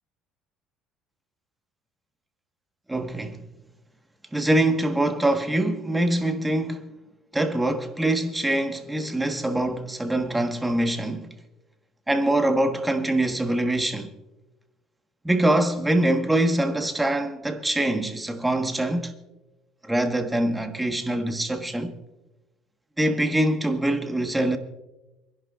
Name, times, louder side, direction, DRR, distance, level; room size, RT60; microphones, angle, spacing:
voice 1, 2.9-3.4 4.3-6.9 7.3-11.3 12.1-14.1 15.2-19.1 19.8-21.9 23.0-24.6, right 1 dB, 10° right, 1.4 m, -24 dB
27.0 x 11.0 x 2.4 m
supercardioid pair, 100°, 0 cm